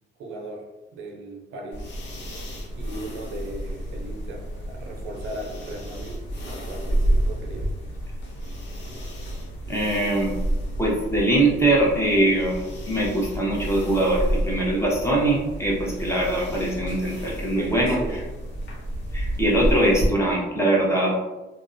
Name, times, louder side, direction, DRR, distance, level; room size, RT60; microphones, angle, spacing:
voice 1, 0.2-0.6 0.9-2.0 2.8-6.2 6.5-7.7 17.6-18.3, right 1 dB, 85° right, 1 dB, 0.6 m, -37 dB
sound 1, 1.7-20.1, right 1 dB, 65° left, 0.8 m, -30 dB
voice 2, 9.7-10.3 10.8-12.6 12.9-18.0 19.1-21.2, right 1 dB, 15° left, -3 dB, 0.7 m, -22 dB
2.4 x 2.0 x 2.5 m, 1.1 s
cardioid pair, 90°, 20 cm